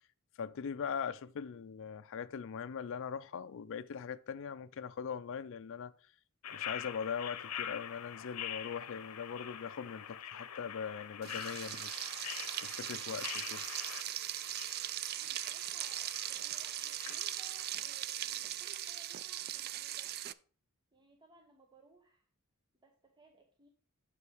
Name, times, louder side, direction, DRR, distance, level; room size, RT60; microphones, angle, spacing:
voice 1, 0.4-5.9 6.5-12.1 12.6-13.6, left 6 dB, 60° left, 0.4 m, -41 dB
sound 1, 6.4-17.7, left 9 dB, 85° left, 0.8 m, -45 dB
Frying (food), 11.2-20.3, right 12 dB, 45° right, 0.3 m, -39 dB
voice 2, 15.1-20.1 20.9-22.3 22.8-23.7, right 3 dB, 20° right, 0.9 m, -63 dB
7.7 x 5.0 x 4.8 m
head